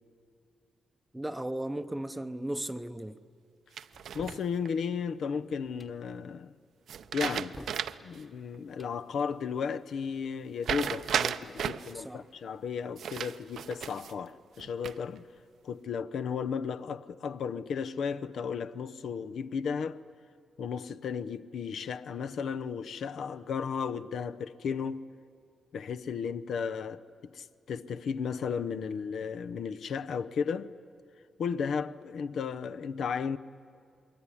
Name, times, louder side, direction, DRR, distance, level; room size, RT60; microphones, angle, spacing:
voice 1, 1.1-3.2 11.9-12.2, right 1 dB, 5° right, 0.8 m, -36 dB
sound 1, 3.8-4.7 6.9-8.2 8.5-8.6 10.6-11.9 13.0-14.2 14.6-15.2, right 8 dB, 70° right, 0.7 m, -34 dB
sound 2, 3.9-4.5 5.6-6.0 7.0-7.9 8.6-9.0, left 1 dB, 15° left, 1.3 m, -49 dB
voice 2, 4.1-6.5 7.1-7.5 8.0-15.2 15.6-20.0 20.6-25.0 25.7-30.7 31.4-33.4, left 6 dB, 65° left, 0.7 m, -34 dB
27.0 x 22.0 x 9.9 m
wide cardioid pair, 140°, 0 cm